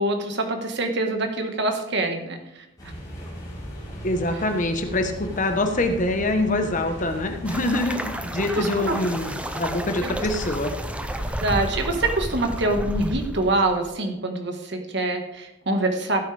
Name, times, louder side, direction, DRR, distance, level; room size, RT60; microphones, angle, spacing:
voice 1, 0.0-2.7 8.6-9.0 10.0-10.1 11.4-16.2, right 2 dB, 55° right, 4 dB, 1.6 m, -25 dB
sound 1, 2.8-11.4, equal, 20° left, 4.0 m, -37 dB
voice 2, 4.0-10.7, left 2 dB, 40° left, 6 dB, 1.1 m, -25 dB
sound 2, 7.5-13.9, right 1 dB, 5° right, 0.5 m, -32 dB
16.0 x 8.7 x 3.4 m, 0.86 s
head